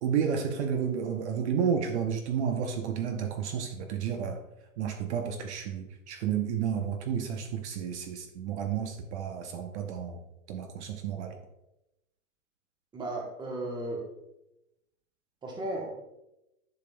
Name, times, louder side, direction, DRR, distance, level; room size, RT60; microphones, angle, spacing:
voice 1, 0.0-4.4 4.8-10.2 10.5-11.4, right 7 dB, 50° right, 6 dB, 0.8 m, -31 dB
voice 2, 12.9-14.0 15.4-16.0, right 1 dB, 10° right, 0 dB, 1.0 m, -35 dB
10.5 x 5.2 x 2.2 m, 0.90 s
hypercardioid pair, 145°, 44 cm